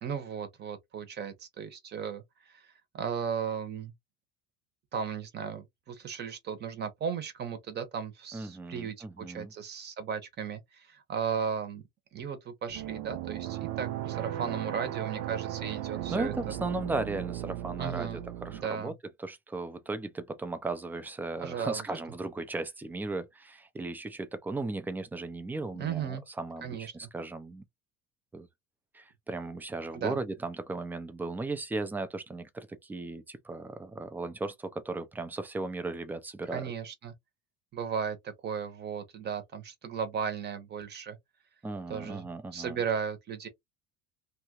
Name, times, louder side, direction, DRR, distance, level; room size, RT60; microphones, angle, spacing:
voice 1, 0.0-2.7 2.9-3.9 4.9-11.8 12.1-16.3 17.8-18.2 18.5-18.9 21.4-21.8 25.8-26.2 26.6-27.1 29.9-30.2 36.5-37.1 37.7-41.2 41.9-43.5, right 7 dB, 30° right, 0.8 m, -36 dB
voice 2, 8.3-9.5 16.1-18.9 19.2-27.6 28.3-28.5 28.9-36.7 41.6-42.8, right 3 dB, 5° right, 0.3 m, -36 dB
sound 1, 12.7-18.6, right 13 dB, 75° right, 0.6 m, -36 dB
2.9 x 2.3 x 2.8 m
cardioid pair, 150°, 32 cm